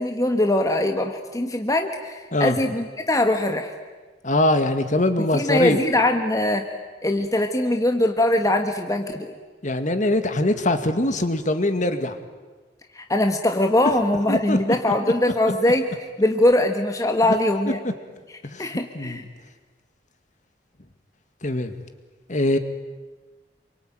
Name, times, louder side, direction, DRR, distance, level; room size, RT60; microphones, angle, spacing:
voice 1, 0.0-3.7 5.3-6.7 7.0-9.3 12.9-15.8 16.2-17.8 18.6-19.2, left 1 dB, 20° left, 5 dB, 1.4 m, -21 dB
voice 2, 4.2-5.8 9.6-12.2 14.3-14.6 17.2-17.3 18.4-19.2 21.4-21.7 22.3-22.6, left 1 dB, 45° left, 8 dB, 2.0 m, -22 dB
27.0 x 24.0 x 9.2 m, 1.3 s
head